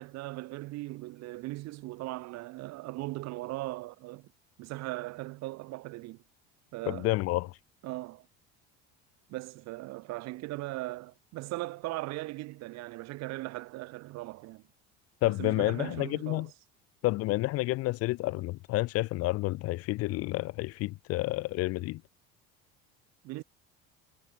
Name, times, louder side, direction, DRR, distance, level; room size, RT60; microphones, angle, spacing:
voice 1, 0.0-4.3 4.6-6.2 6.7-7.2 7.8-8.3 9.3-14.6 15.2-16.5 23.2-23.4, right 19 dB, 60° right, 0.7 m, -39 dB
voice 2, 6.9-7.5 15.2-16.5 17.0-22.0, left 19 dB, 55° left, 0.4 m, -30 dB
supercardioid pair, 95°, 31 cm